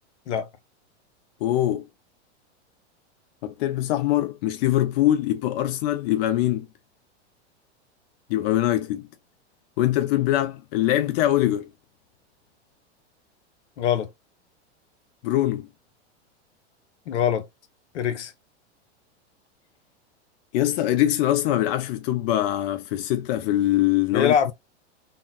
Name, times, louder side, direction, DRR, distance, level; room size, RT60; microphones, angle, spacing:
voice 1, 1.4-1.9 3.4-6.7 8.3-9.1 9.8-11.7 15.2-15.7 20.5-24.5, left 13 dB, 55° left, 0.5 m, -23 dB
voice 2, 13.8-14.1 17.1-17.5 17.9-18.3 24.1-24.5, left 8 dB, 80° left, 0.8 m, -23 dB
3.7 x 2.1 x 2.2 m
hypercardioid pair, 110°, 35 cm